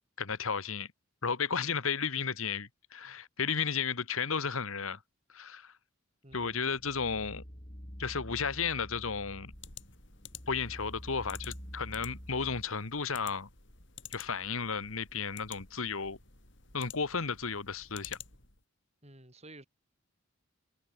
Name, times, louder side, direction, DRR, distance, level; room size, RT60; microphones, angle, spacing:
voice 1, 0.2-0.9 1.2-5.0 5.3-5.7 6.3-7.4 8.0-9.5 10.5-13.5 14.1-16.2 16.7-18.2, left 5 dB, 75° left, 1.5 m, -33 dB
voice 2, 6.2-6.6 19.0-19.7, right 1 dB, 30° right, 7.5 m, -52 dB
sound 1, 6.3-12.6, equal, 25° left, 5.8 m, -47 dB
sound 2, 9.5-18.6, left 9 dB, 55° left, 4.9 m, -51 dB
head